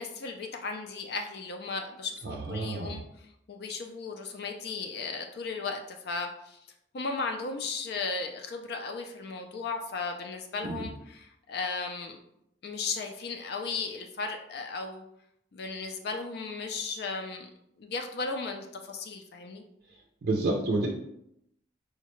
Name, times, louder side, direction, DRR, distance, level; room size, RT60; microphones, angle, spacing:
voice 1, 0.0-6.6 6.9-12.2 12.6-15.0 15.5-17.5 17.8-19.6, left 4 dB, 60° left, 4 dB, 0.4 m, -36 dB
voice 2, 2.2-3.0 10.6-10.9 20.2-20.9, right 2 dB, 55° right, -1 dB, 0.4 m, -29 dB
4.6 x 2.1 x 3.0 m, 0.77 s
head